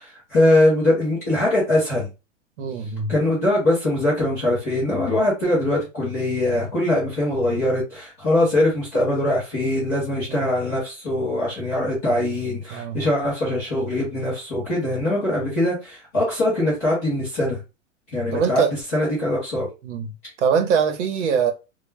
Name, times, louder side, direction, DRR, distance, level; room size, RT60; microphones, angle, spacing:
voice 1, 0.0-2.1 3.1-17.6 18.1-18.6 18.9-19.7, left 1 dB, 15° left, 0.4 m, -22 dB
voice 2, 2.6-3.1 10.3-10.5 12.7-13.0 18.3-18.7 19.8-20.1 20.4-21.5, right 6 dB, 65° right, 0.7 m, -22 dB
2.1 x 2.1 x 3.2 m
supercardioid pair, 165°, 39 cm